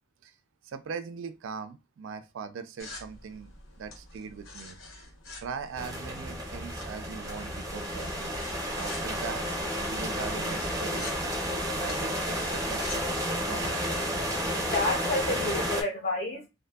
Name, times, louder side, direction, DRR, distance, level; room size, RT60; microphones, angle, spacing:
voice 1, 0.6-4.8 5.4-8.3 8.8-9.5 9.9-11.1 11.8-13.1 13.5-13.9, right 6 dB, 70° right, 0.3 m, -40 dB
sound 1, 2.8-13.1, left 2 dB, 75° left, 0.8 m, -46 dB
sound 2, 5.7-15.8, equal, 15° right, 0.6 m, -31 dB
voice 2, 14.3-16.5, left 2 dB, 45° left, 0.5 m, -30 dB
2.5 x 2.5 x 2.2 m
head